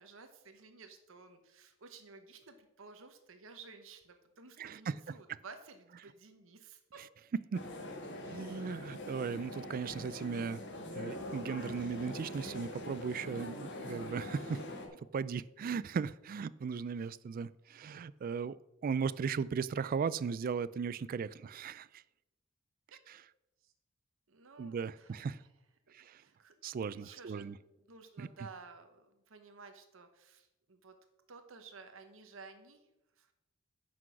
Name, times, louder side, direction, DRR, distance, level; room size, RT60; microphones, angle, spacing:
voice 1, 0.0-7.0 17.0-17.1 22.9-23.0 23.6-23.7 24.3-25.3 25.9-27.5 27.9-30.9 31.3-32.9 33.2-33.3, right 4 dB, 65° right, 7 dB, 1.0 m, -54 dB
voice 2, 4.6-4.9 7.5-7.6 8.3-10.6 10.9-14.6 15.1-18.6 18.8-22.0 24.6-25.4 25.9-26.2 26.6-27.5 28.2-28.3, right 6 dB, 40° right, 17 dB, 0.3 m, -37 dB
sound 1, 7.5-14.9, left 1 dB, 55° left, 1.6 m, -43 dB
9.5 x 6.0 x 5.9 m, 0.95 s
head